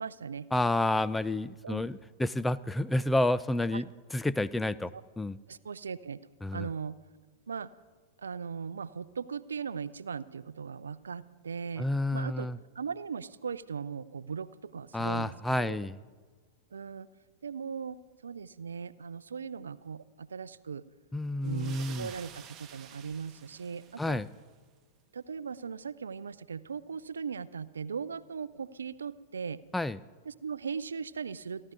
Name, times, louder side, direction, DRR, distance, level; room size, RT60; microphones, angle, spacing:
voice 1, 0.0-0.5 1.6-1.8 3.7-3.8 5.5-6.2 6.5-7.0 7.5-7.7 8.2-12.5 12.8-15.8 16.7-17.1 17.4-18.0 18.2-20.8 21.4-24.2 25.1-29.6 30.3-31.7, right 6 dB, 70° right, 17 dB, 0.6 m, -38 dB
voice 2, 0.5-5.4 6.4-6.7 11.8-12.6 14.9-16.0 21.1-22.1 24.0-24.3 29.7-30.0, left 1 dB, 5° left, 16 dB, 0.4 m, -30 dB
sound 1, 21.4-24.5, right 8 dB, 25° right, 1.3 m, -50 dB
29.5 x 12.0 x 4.0 m, 1.5 s
figure-of-eight pair, 95°, 0 cm